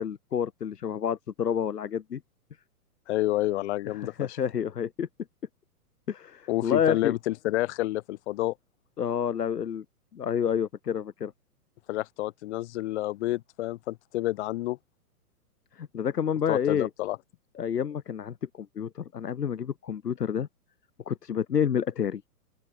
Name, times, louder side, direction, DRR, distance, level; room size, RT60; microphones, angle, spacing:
voice 1, 0.0-2.2 4.0-5.1 6.1-7.1 9.0-9.8 10.1-11.3 15.8-16.9 17.5-20.5 21.1-22.2, left 8 dB, 85° left, 1.3 m, -29 dB
voice 2, 3.1-4.4 6.5-8.5 11.9-14.8 16.5-17.2, left 16 dB, 45° left, 1.8 m, -29 dB
open air
hypercardioid pair, 125°, 46 cm